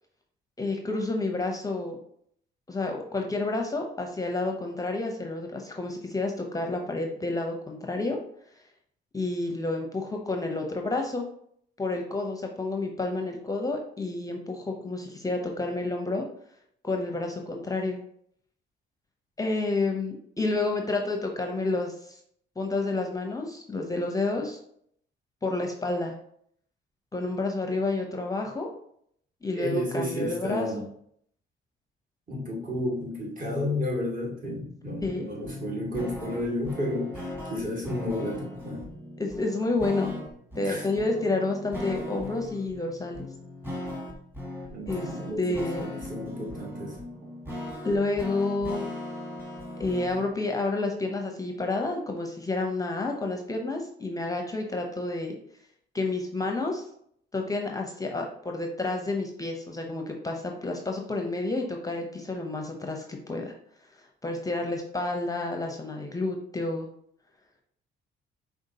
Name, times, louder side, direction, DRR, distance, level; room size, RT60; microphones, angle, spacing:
voice 1, 0.6-2.0 2.7-8.2 9.1-11.3 11.8-16.2 16.8-18.0 19.4-22.2 22.6-24.6 25.4-26.1 27.1-28.7 29.4-30.8 35.0-35.3 39.2-40.1 40.6-43.3 44.9-45.1 45.4-46.0 47.8-48.9 49.8-55.3 55.9-56.9 57.3-63.5 64.2-66.9, left 2 dB, 20° left, 2 dB, 0.6 m, -30 dB
voice 2, 29.6-30.8 32.3-38.9 40.6-40.9 44.7-47.0, left 1 dB, 40° right, -3 dB, 1.9 m, -32 dB
sound 1, 35.0-50.3, left 1 dB, 10° right, 1.4 m, -38 dB
5.0 x 3.5 x 2.8 m, 0.68 s
cardioid pair, 90°, 20 cm